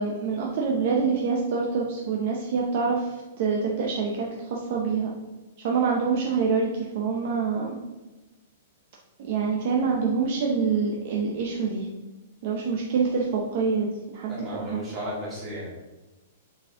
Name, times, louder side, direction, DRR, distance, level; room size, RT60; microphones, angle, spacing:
voice 1, 0.0-5.1 5.6-7.7 9.2-11.9 12.4-13.9 14.1-14.8, right 5 dB, 40° right, -1 dB, 0.7 m, -26 dB
voice 2, 14.3-15.7, equal, 10° right, -8 dB, 2.1 m, -34 dB
7.0 x 4.2 x 3.7 m, 1.1 s
hypercardioid pair, 175°, 0 cm